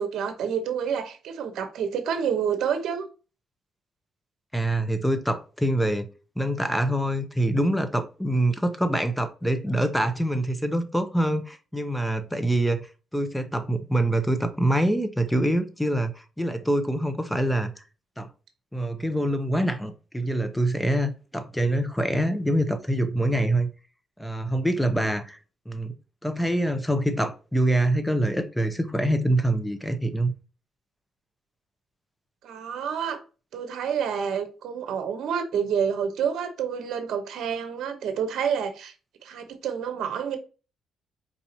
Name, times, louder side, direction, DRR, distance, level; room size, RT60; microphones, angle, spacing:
voice 1, 0.0-3.1 32.4-33.2 33.5-38.9 39.2-40.4, right 7 dB, 75° right, 0.8 m, -28 dB
voice 2, 4.5-6.1 6.4-12.9 13.1-17.7 18.2-18.3 18.7-23.7 24.2-25.4 25.7-26.0 26.2-30.3, right 1 dB, 5° left, 0.7 m, -25 dB
4.5 x 2.8 x 2.7 m
cardioid pair, 90°, 0 cm